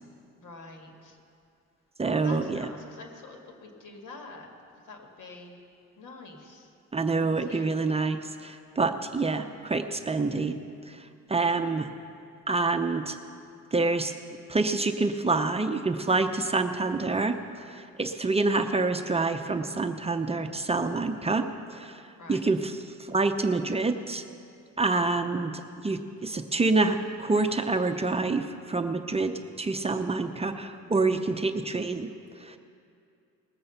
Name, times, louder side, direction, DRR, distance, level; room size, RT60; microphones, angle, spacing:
voice 1, 0.4-1.2 2.0-4.5 4.8-5.6 6.0-6.7 7.1-7.7 22.2-22.5, left 3 dB, 80° left, 2 dB, 1.9 m, -46 dB
voice 2, 2.0-2.7 6.9-10.6 10.9-11.9 12.5-13.2 13.7-14.1 14.5-22.0 22.3-24.2 24.8-32.6, right 3 dB, 20° right, 6 dB, 0.6 m, -27 dB
19.5 x 7.8 x 5.7 m, 2.5 s
cardioid pair, 90°, 30 cm